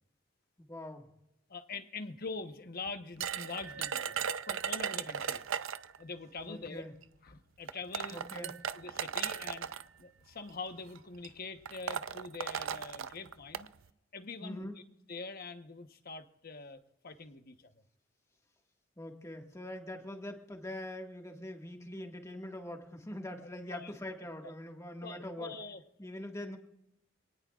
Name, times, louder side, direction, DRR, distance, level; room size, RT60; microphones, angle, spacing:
voice 1, 0.6-1.1 6.5-6.9 8.1-8.6 14.4-14.8 19.0-25.5 26.0-26.6, left 1 dB, 15° left, 2 dB, 1.8 m, -43 dB
voice 2, 1.5-5.4 6.0-6.9 7.2-9.7 10.0-13.7 14.1-14.7 15.1-17.6 23.4-23.9 25.0-25.8, left 4 dB, 50° left, 8 dB, 1.1 m, -44 dB
sound 1, 3.2-6.0 7.0-7.1 7.7-9.8 10.7-11.0 11.2-11.3 11.7-13.7, right 7 dB, 85° right, 0.6 m, -36 dB
27.0 x 19.0 x 2.5 m, 0.86 s
head